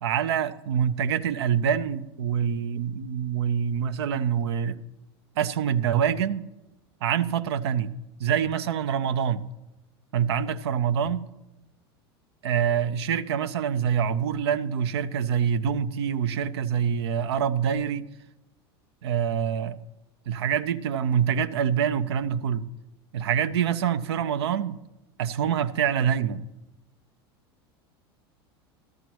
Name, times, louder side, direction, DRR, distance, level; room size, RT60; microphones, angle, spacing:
voice 1, 0.0-4.8 5.4-6.4 7.0-7.9 8.2-9.5 10.1-11.2 12.4-18.1 19.0-19.8 20.3-22.7 23.1-24.8 25.2-26.5, right 8 dB, 75° right, 0.5 m, -25 dB
14.0 x 13.0 x 3.0 m
hypercardioid pair, 90°, 14 cm